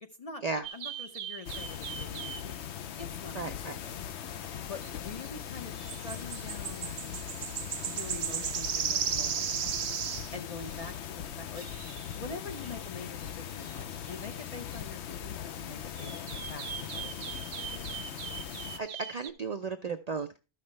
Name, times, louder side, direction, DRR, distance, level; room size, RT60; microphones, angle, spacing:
voice 1, 0.0-4.0 4.6-6.9 7.8-9.8 10.3-17.3, left 4 dB, 40° left, 6 dB, 0.5 m, -45 dB
sound 1, 0.6-2.5 4.8-4.9 5.2-5.3 5.5-10.9 11.6-12.2 12.5-12.9 13.2-13.3 13.5-14.5 14.7-14.8 16.0-19.3, right 9 dB, 70° right, 0.9 m, -37 dB
sound 2, 1.5-18.8, left 9 dB, 70° left, 0.9 m, -40 dB
voice 2, 3.3-3.8 18.8-20.4, right 4 dB, 55° right, 6 dB, 0.4 m, -35 dB
13.0 x 5.9 x 3.1 m, 0.30 s
omnidirectional pair, 1.2 m